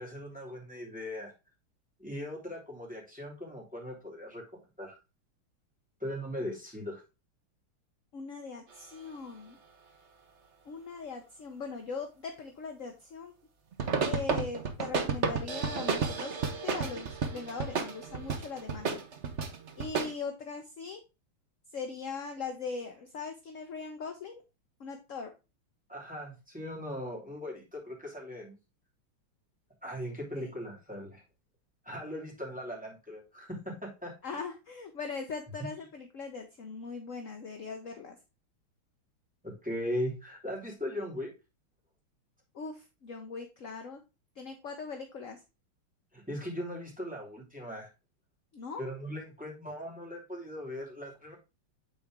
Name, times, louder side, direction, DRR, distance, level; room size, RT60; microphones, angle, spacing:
voice 1, 0.0-1.3 2.0-4.4 4.8-5.0 6.0-7.0 25.9-28.5 29.8-31.2 31.8-34.4 39.4-41.3 46.1-47.9 48.8-51.4, equal, 5° right, -3 dB, 2.7 m, -39 dB
voice 2, 8.1-9.6 10.6-13.3 14.0-16.4 16.6-19.0 19.8-21.0 21.7-24.4 24.8-25.3 30.3-30.5 34.2-38.2 42.5-44.0 44.4-45.4 48.5-48.8, left 5 dB, 55° left, 4 dB, 0.9 m, -40 dB
sound 1, 13.7-20.1, right 5 dB, 50° right, 0.9 m, -32 dB
8.3 x 4.2 x 3.6 m, 0.28 s
omnidirectional pair, 2.4 m